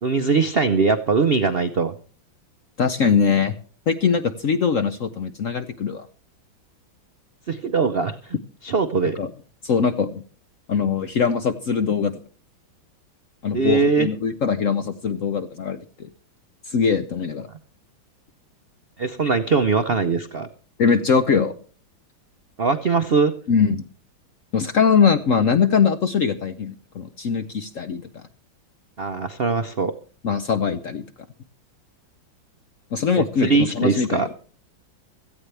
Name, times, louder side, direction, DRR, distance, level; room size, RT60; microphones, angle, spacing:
voice 1, 0.0-1.9 7.5-8.4 8.6-9.2 13.5-14.1 19.0-20.5 22.6-23.3 29.0-29.9 33.2-34.3, right 4 dB, 70° right, 8 dB, 0.5 m, -21 dB
voice 2, 2.8-3.5 3.9-6.1 9.2-9.3 9.6-10.2 10.7-12.1 13.4-16.1 16.7-17.5 20.8-21.5 23.5-23.8 24.5-28.2 30.2-31.0 32.9-34.3, left 6 dB, 60° left, 9 dB, 0.8 m, -21 dB
17.0 x 14.0 x 3.3 m, 0.40 s
omnidirectional pair, 2.2 m